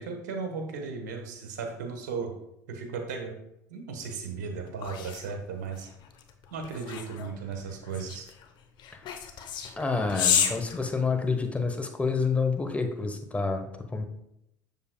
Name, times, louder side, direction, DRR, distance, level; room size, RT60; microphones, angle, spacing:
voice 1, 0.0-2.3 2.7-3.3 3.7-5.9 6.5-8.3, right 5 dB, 80° right, 4 dB, 1.1 m, -36 dB
sound 1, 4.1-11.7, left 8 dB, 50° left, 0.8 m, -32 dB
voice 2, 9.8-14.0, left 4 dB, 15° left, 5 dB, 1.0 m, -28 dB
7.3 x 6.6 x 2.2 m, 0.80 s
hypercardioid pair, 80°, 10 cm